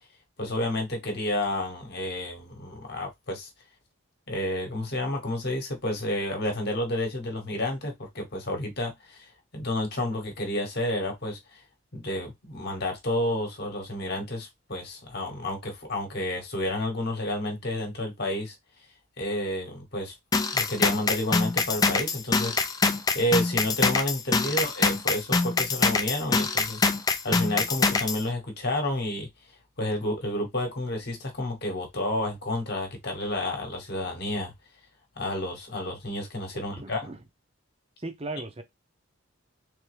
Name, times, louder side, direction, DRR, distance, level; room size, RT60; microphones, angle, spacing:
voice 1, 0.4-3.5 4.3-11.6 11.9-18.5 19.2-20.1 20.5-26.8 27.2-29.3 29.8-34.5 35.2-37.1, left 1 dB, 50° left, 1.0 m, -30 dB
sound 1, 20.3-28.2, left 4 dB, 15° left, 0.3 m, -24 dB
voice 2, 36.5-37.2 38.0-38.6, right 2 dB, 30° right, 0.7 m, -38 dB
3.4 x 3.4 x 3.3 m
head